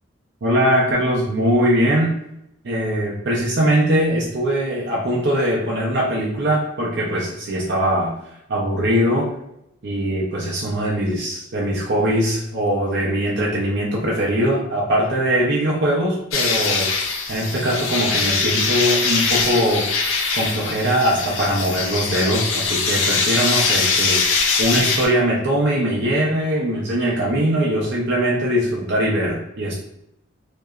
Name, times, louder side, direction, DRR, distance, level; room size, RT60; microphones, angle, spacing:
voice 1, 0.4-2.1 2.6-8.1 8.5-9.3 9.8-19.9 20.3-29.7, equal, 60° right, -4 dB, 0.5 m, -21 dB
sound 1, 16.3-25.1, left 4 dB, 85° left, 0.5 m, -22 dB
2.8 x 2.2 x 2.3 m, 0.80 s
head